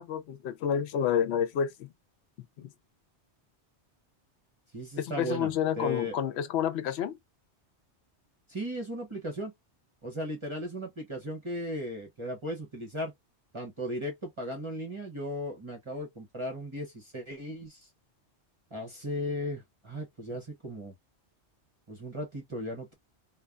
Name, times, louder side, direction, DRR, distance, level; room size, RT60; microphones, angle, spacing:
voice 1, 0.0-1.9 2.6-2.7 5.0-7.2, left 8 dB, 70° left, 0.8 m, -29 dB
voice 2, 4.7-6.2 8.5-9.5 10.0-13.1 13.5-17.9 18.7-20.9 21.9-23.0, equal, 30° right, 0.9 m, -36 dB
3.1 x 2.2 x 2.3 m
omnidirectional pair, 1.2 m